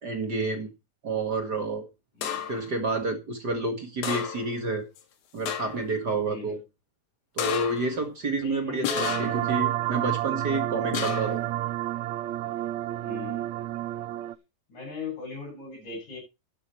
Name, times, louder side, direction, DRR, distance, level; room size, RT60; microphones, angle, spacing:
voice 1, 0.0-0.7 1.0-1.9 2.5-4.9 5.3-6.6 7.3-11.4, right 3 dB, 40° right, 5 dB, 1.8 m, -29 dB
voice 2, 2.1-2.5 6.3-6.6 8.3-9.1 13.0-13.5 14.7-16.2, left 4 dB, 55° left, -3 dB, 8.3 m, -40 dB
sound 1, 2.2-2.7 4.0-4.6 5.0-5.1 5.5-5.9 7.4-8.0 8.8-9.5 10.9-11.5, left 7 dB, 90° left, 3.6 m, -31 dB
sound 2, 9.0-14.3, right 15 dB, 85° right, 1.6 m, -30 dB
12.5 x 8.9 x 4.4 m, 0.26 s
omnidirectional pair, 4.1 m